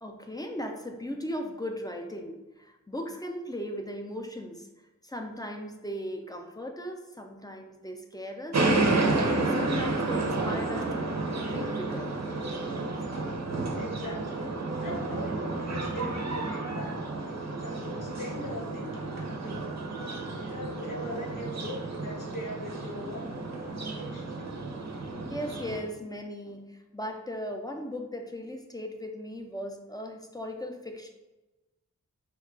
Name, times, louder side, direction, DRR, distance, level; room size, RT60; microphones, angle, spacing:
voice 1, 0.0-4.7 5.0-8.6 9.0-12.1 25.0-31.1, equal, 15° left, 3 dB, 0.4 m, -38 dB
sound 1, 8.5-25.8, right 2 dB, 60° right, 0.6 m, -31 dB
voice 2, 13.7-14.4 14.8-17.0 17.6-19.7 20.4-24.5, equal, 90° left, -2 dB, 0.9 m, -41 dB
3.1 x 2.3 x 3.6 m, 1.0 s
wide cardioid pair, 80°, 31 cm